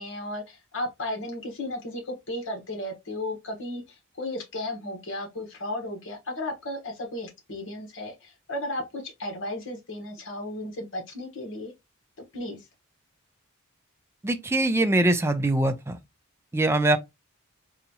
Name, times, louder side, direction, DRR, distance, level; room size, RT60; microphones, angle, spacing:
voice 1, 0.0-11.7 12.3-12.7, left 1 dB, 60° left, 1.2 m, -34 dB
voice 2, 14.2-16.0 16.5-17.0, right 2 dB, 10° right, 0.4 m, -23 dB
4.0 x 2.4 x 2.8 m
head